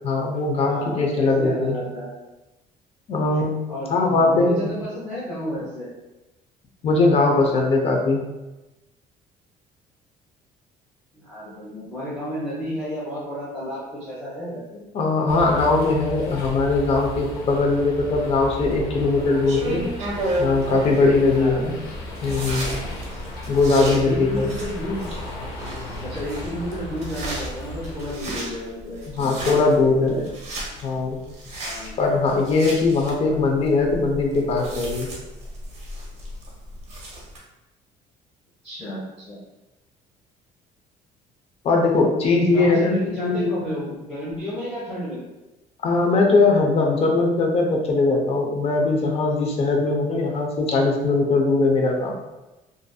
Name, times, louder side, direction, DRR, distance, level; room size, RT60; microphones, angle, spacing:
voice 1, 0.0-1.8 3.1-4.7 6.8-8.2 14.9-19.8 20.4-21.7 22.2-22.7 23.5-24.6 29.1-30.2 30.8-31.2 32.0-35.1 41.6-43.7 45.8-52.2, left 3 dB, 40° left, 1 dB, 0.5 m, -20 dB
voice 2, 0.6-2.1 3.7-5.9 11.1-14.8 21.3-21.6 23.9-25.1 26.0-29.3 29.6-30.2 31.6-31.9 33.2-33.4 38.6-39.4 42.4-45.2, equal, ahead, -12 dB, 0.9 m, -32 dB
sound 1, 15.3-28.2, left 1 dB, 90° left, 0.6 m, -35 dB
sound 2, 19.2-37.4, right 1 dB, 50° right, 0.7 m, -34 dB
2.5 x 2.5 x 2.3 m, 1.0 s
cardioid pair, 135°, 15 cm